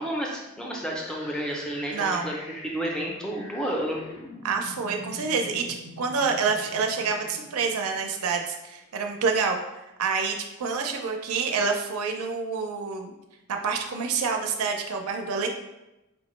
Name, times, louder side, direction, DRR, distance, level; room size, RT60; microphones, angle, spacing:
voice 1, 0.0-4.0, right 1 dB, 5° left, -1 dB, 0.4 m, -31 dB
sound 1, 0.9-8.9, left 1 dB, 85° left, 1.1 m, -45 dB
voice 2, 1.9-2.4 4.4-13.1 13.5-15.5, right 5 dB, 85° right, 3 dB, 0.4 m, -27 dB
4.4 x 2.1 x 3.1 m, 0.95 s
head